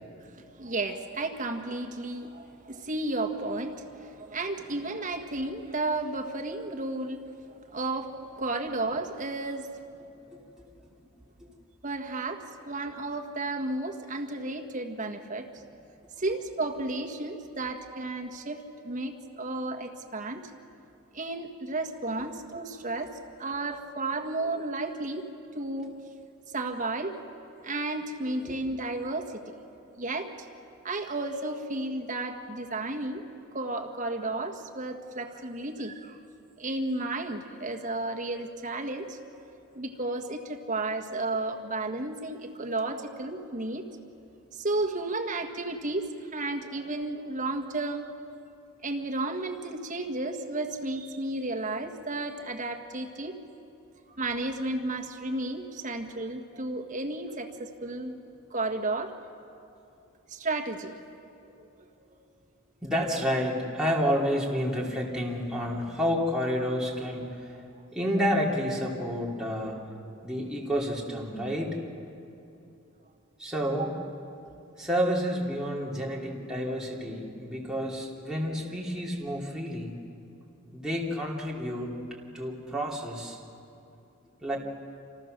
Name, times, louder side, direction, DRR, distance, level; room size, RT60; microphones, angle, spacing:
voice 1, 0.2-10.1 11.8-15.6 16.2-20.5 21.1-25.3 25.5-25.9 26.5-27.2 27.6-29.6 29.9-30.5 30.8-33.2 33.5-36.2 36.6-39.2 39.7-43.8 44.5-48.1 48.8-53.4 54.2-58.2 58.5-59.2 60.3-60.9 61.4-61.5 67.5-67.6 73.8-73.9, right 2 dB, 35° right, 3 dB, 1.7 m, -33 dB
voice 2, 62.8-67.5 67.9-69.8 70.2-71.7 73.4-73.9 74.8-79.9 80.7-82.0 82.3-83.4 84.4-84.6, equal, 5° right, -4 dB, 3.1 m, -29 dB
29.5 x 27.5 x 6.8 m, 2.7 s
head